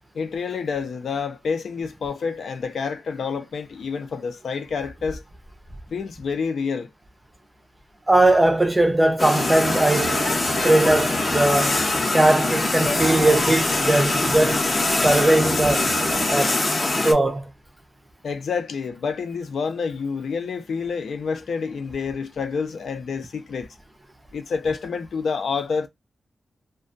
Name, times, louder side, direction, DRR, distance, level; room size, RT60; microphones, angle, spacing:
voice 1, 0.1-5.2 5.9-6.9 18.2-23.7 24.3-25.9, left 5 dB, 75° left, 0.5 m, -28 dB
voice 2, 8.1-10.2 10.6-11.8 12.1-14.6 15.0-15.9 16.3-16.6 17.0-17.4, right 1 dB, 15° right, 0.5 m, -19 dB
sound 1, 9.2-17.1, left 2 dB, 25° left, 0.7 m, -23 dB
sound 2, 9.6-16.3, right 4 dB, 75° right, 0.6 m, -35 dB
2.3 x 2.2 x 2.5 m
wide cardioid pair, 145°, 0 cm